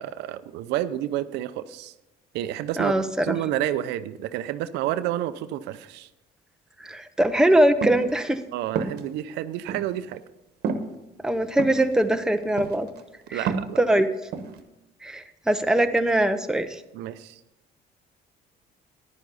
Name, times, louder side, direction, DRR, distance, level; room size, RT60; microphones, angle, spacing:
voice 1, 0.0-1.9 2.3-2.9 3.2-6.1 8.5-10.2 13.3-13.8 16.9-17.4, right 12 dB, 90° right, 13 dB, 0.5 m, -29 dB
voice 2, 2.8-3.4 6.8-8.4 11.2-12.9 13.3-13.5 13.8-14.1 15.0-16.8, right 1 dB, 5° right, 7 dB, 0.7 m, -22 dB
sound 1, 7.8-8.1 8.8-9.0 9.7-9.8 10.6-10.8 11.6-11.8 12.6-13.0 13.3-13.8 14.3-14.6, right 5 dB, 70° right, 1.1 m, -28 dB
10.5 x 10.0 x 4.1 m, 0.96 s
cardioid pair, 110°, 17 cm